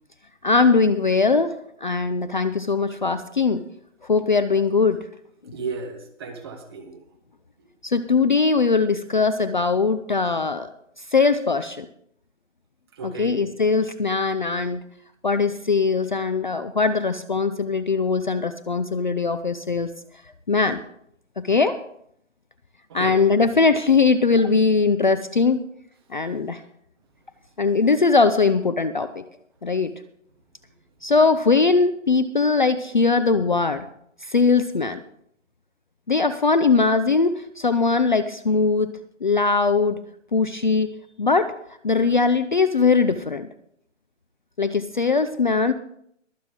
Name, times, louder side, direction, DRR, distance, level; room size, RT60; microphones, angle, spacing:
voice 1, 0.4-1.5 1.8-3.6 4.1-5.0 7.8-10.7 11.1-11.9 13.0-14.8 15.2-19.9 20.5-20.8 21.4-21.8 22.9-25.6 26.1-26.6 27.6-29.2 29.6-29.9 31.0-33.9 34.3-35.0 36.1-38.9 39.2-40.0 40.3-40.9 41.2-41.5 41.8-43.5 44.6-45.7, left 4 dB, 40° left, 12 dB, 0.5 m, -20 dB
voice 2, 5.5-7.0 13.0-13.4 22.9-23.2, right 4 dB, 20° right, 4 dB, 1.2 m, -34 dB
22.5 x 7.7 x 3.7 m, 0.70 s
hypercardioid pair, 165°, 38 cm